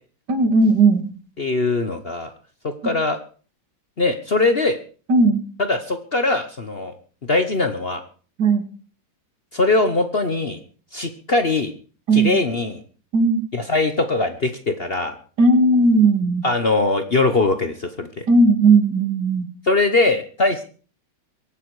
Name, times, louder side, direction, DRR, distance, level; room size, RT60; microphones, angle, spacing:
voice 1, 0.3-1.1 5.1-5.4 8.4-8.6 12.1-12.4 13.1-13.5 15.4-16.4 18.3-19.5, right 3 dB, 65° right, 8 dB, 2.5 m, -16 dB
voice 2, 1.4-2.3 2.8-3.2 4.0-4.8 5.6-6.9 7.3-8.0 9.5-10.6 10.9-11.7 12.1-12.8 13.5-15.1 16.4-18.2 19.7-20.7, left 3 dB, 40° left, 8 dB, 1.1 m, -21 dB
23.5 x 8.6 x 4.8 m, 0.39 s
omnidirectional pair, 2.0 m